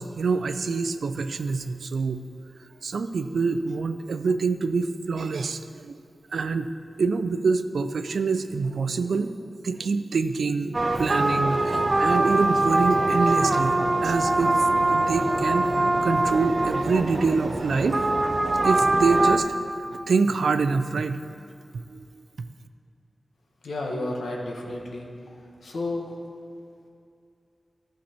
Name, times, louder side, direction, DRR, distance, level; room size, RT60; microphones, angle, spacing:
voice 1, 0.0-2.2 2.8-6.0 6.3-6.7 7.0-9.3 9.6-13.8 14.0-15.7 16.0-18.2 18.6-19.5 20.1-21.2 21.7-22.1, right 4 dB, 85° right, 10 dB, 0.4 m, -26 dB
sound 1, 10.7-19.4, right 2 dB, 35° right, 0.6 m, -23 dB
voice 2, 23.6-25.1 25.6-26.0, left 2 dB, 85° left, -1 dB, 1.3 m, -31 dB
14.0 x 5.8 x 4.3 m, 2.5 s
wide cardioid pair, 100°, 0 cm